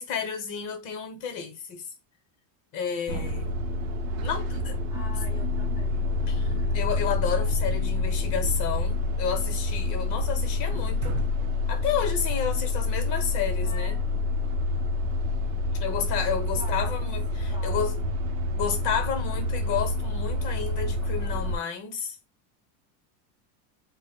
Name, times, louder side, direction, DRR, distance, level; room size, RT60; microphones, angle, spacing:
voice 1, 0.0-1.8 2.7-3.5 4.2-4.8 6.3-11.2 11.7-14.0 15.8-18.0 18.5-22.2, left 7 dB, 40° left, 0.7 m, -31 dB
sound 1, 3.1-21.6, left 2 dB, 75° right, 0.6 m, -27 dB
voice 2, 4.9-6.8 13.6-14.1 16.6-17.1 17.4-17.8 18.3-18.7, equal, 10° right, 0.5 m, -45 dB
2.1 x 2.0 x 3.4 m
supercardioid pair, 150°, 50 cm